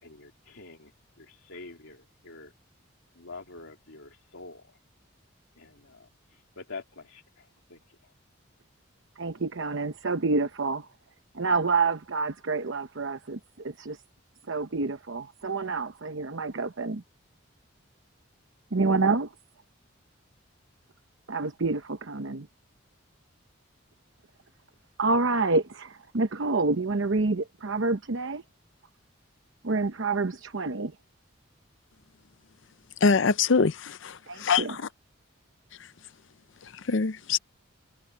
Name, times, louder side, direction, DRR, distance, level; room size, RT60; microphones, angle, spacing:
voice 1, 0.0-0.9 1.2-2.5 3.1-4.8 5.5-8.1, left 3 dB, 85° left, 3.0 m, -46 dB
voice 2, 9.2-10.9 11.3-14.0 14.5-17.0 18.7-19.3 21.3-22.5 25.0-28.4 29.6-30.9 34.3-34.8, right 3 dB, 70° right, 0.9 m, -28 dB
voice 3, 33.0-34.1 34.4-34.8 36.9-37.4, left 5 dB, 65° left, 0.6 m, -23 dB
head